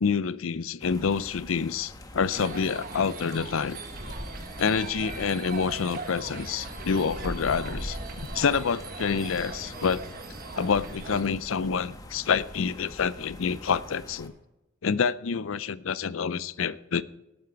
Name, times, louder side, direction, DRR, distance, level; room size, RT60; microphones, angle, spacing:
voice 1, 0.0-3.8 4.6-10.0 10.6-14.3 14.8-17.0, left 6 dB, 80° left, 0.5 m, -27 dB
sound 1, 0.8-14.3, left 1 dB, 20° left, 1.2 m, -42 dB
sound 2, 2.3-11.2, right 3 dB, 45° right, 1.3 m, -40 dB
18.5 x 8.8 x 4.7 m
head